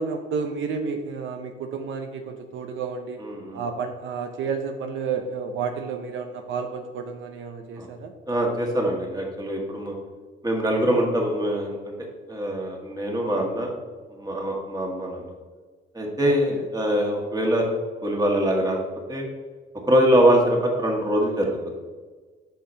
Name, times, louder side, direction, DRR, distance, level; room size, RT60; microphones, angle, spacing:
voice 1, 0.0-3.2 3.5-8.1 16.2-16.7, right 5 dB, 75° right, 5 dB, 0.7 m, -31 dB
voice 2, 3.2-3.6 7.8-7.9 8.3-9.9 10.4-11.9 12.3-13.7 14.1-15.3 15.9-17.6 18.0-18.8 19.1-19.2 19.9-21.7, equal, 20° right, 0 dB, 1.7 m, -23 dB
8.4 x 5.8 x 2.8 m, 1.4 s
cardioid pair, 90°, 20 cm